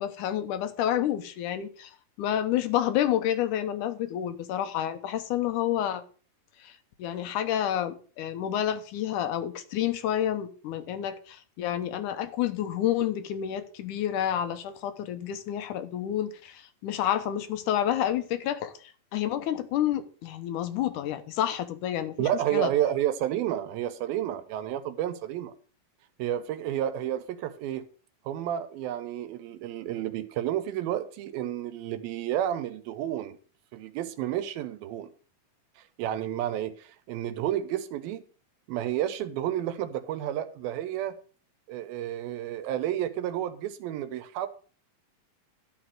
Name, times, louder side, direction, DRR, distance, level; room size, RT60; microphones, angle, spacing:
voice 1, 0.0-1.9 2.2-6.0 6.6-6.7 7.0-22.7, left 11 dB, 70° left, 2.2 m, -29 dB
voice 2, 22.2-25.5 26.2-27.9 28.3-33.4 33.7-35.1 35.8-38.2 38.7-41.2 41.7-44.5, right 11 dB, 85° right, 2.7 m, -31 dB
12.0 x 4.3 x 7.6 m
omnidirectional pair, 4.2 m